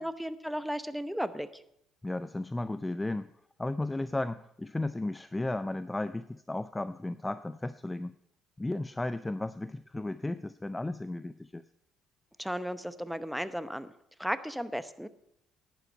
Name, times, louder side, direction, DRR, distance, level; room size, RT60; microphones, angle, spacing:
voice 1, 0.0-1.6 12.4-13.9 14.2-15.1, equal, ahead, 12 dB, 0.9 m, -35 dB
voice 2, 2.0-3.3 3.6-8.1 8.6-11.6, left 2 dB, 15° left, 14 dB, 0.4 m, -34 dB
11.0 x 9.3 x 5.5 m, 0.74 s
hypercardioid pair, 60°, 0 cm